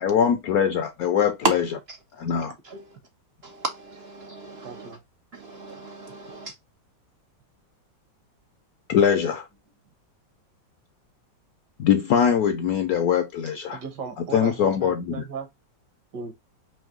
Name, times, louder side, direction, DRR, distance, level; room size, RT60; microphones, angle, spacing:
voice 1, 0.0-1.4 2.2-2.5 8.9-9.4 11.8-13.8 14.3-15.2, left 8 dB, 75° left, 0.8 m, -22 dB
voice 2, 2.6-3.0 3.4-5.0 5.3-6.5, right 3 dB, 85° right, 0.5 m, -32 dB
voice 3, 4.6-5.0 13.7-15.5 16.1-16.3, right 5 dB, 65° right, 1.6 m, -36 dB
4.7 x 2.6 x 3.7 m
omnidirectional pair, 2.0 m